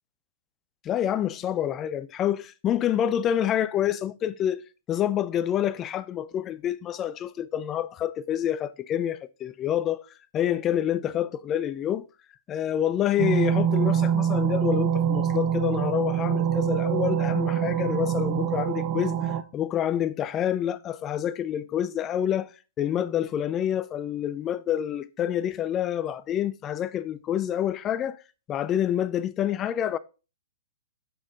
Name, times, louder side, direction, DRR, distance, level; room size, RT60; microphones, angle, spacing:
voice 1, 0.8-4.6 4.9-10.1 10.3-12.0 12.5-22.5 22.8-28.2 28.5-30.0, left 10 dB, 25° left, 0.5 m, -27 dB
sound 1, 13.2-19.4, right 9 dB, 40° right, 0.7 m, -25 dB
6.3 x 6.1 x 3.7 m
hypercardioid pair, 115°, 0 cm